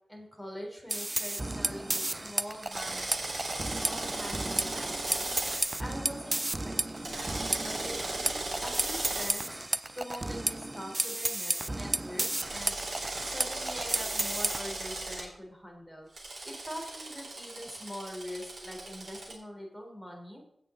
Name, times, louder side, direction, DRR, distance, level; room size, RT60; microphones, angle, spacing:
voice 1, 0.1-3.0 3.6-5.4 5.8-12.7 13.2-16.1 16.4-20.4, equal, ahead, -1 dB, 3.5 m, -43 dB
sound 1, 0.9-14.6, right 2 dB, 20° right, 0.4 m, -33 dB
Drill, 2.7-5.6 7.0-9.3 12.4-15.2 16.2-19.3, right 2 dB, 65° right, 4.0 m, -37 dB
17.0 x 6.5 x 3.8 m, 0.73 s
wide cardioid pair, 110°, 0 cm